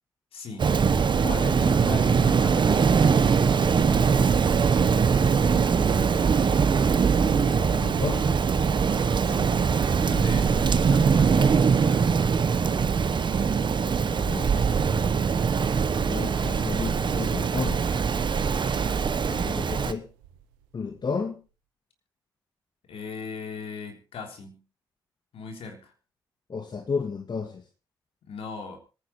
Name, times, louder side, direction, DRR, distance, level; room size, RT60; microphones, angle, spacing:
voice 1, 0.3-0.8 1.2-4.4 9.2-9.6 10.0-11.6 22.9-24.6 25.3-25.9 28.2-28.8, left 4 dB, 65° left, 3 dB, 3.5 m, -39 dB
Rain, 0.6-19.9, right 6 dB, 45° right, 1.1 m, -22 dB
sound 1, 2.7-21.2, right 11 dB, 85° right, 1.1 m, -42 dB
voice 2, 7.2-8.3 14.1-14.5 15.9-17.9 19.1-20.1 20.7-21.4 26.5-27.6, left 5 dB, 45° left, 3 dB, 2.0 m, -33 dB
25.5 x 10.0 x 3.2 m, 0.33 s
hypercardioid pair, 45°, 11 cm